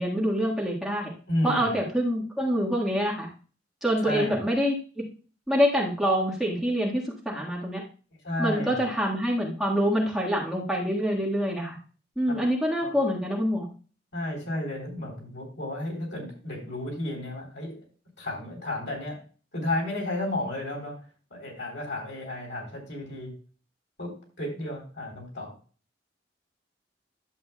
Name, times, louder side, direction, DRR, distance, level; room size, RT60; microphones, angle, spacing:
voice 1, 0.0-1.1 1.4-3.3 3.8-5.0 5.5-7.8 8.4-11.8 12.1-13.7, equal, ahead, -4 dB, 1.6 m, -26 dB
voice 2, 1.3-1.8 4.0-4.4 8.2-8.9 12.8-12.9 14.1-17.8 18.2-19.2 19.5-21.0 21.3-23.3 24.0-25.5, left 1 dB, 80° left, -1 dB, 3.7 m, -32 dB
11.0 x 7.5 x 2.3 m, 0.38 s
head